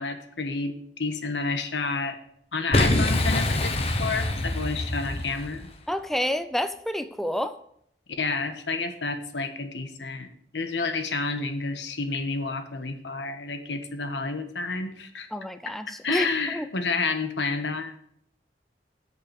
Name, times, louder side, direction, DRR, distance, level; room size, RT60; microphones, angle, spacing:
voice 1, 0.0-2.2 2.5-5.7 8.2-15.3 16.0-18.0, left 3 dB, 90° left, 7 dB, 1.3 m, -30 dB
Boom, 2.7-5.7, left 1 dB, 35° left, 1.0 m, -25 dB
voice 2, 5.9-7.6 15.3-16.7, equal, ahead, 10 dB, 0.5 m, -29 dB
8.5 x 6.8 x 6.7 m, 0.68 s
head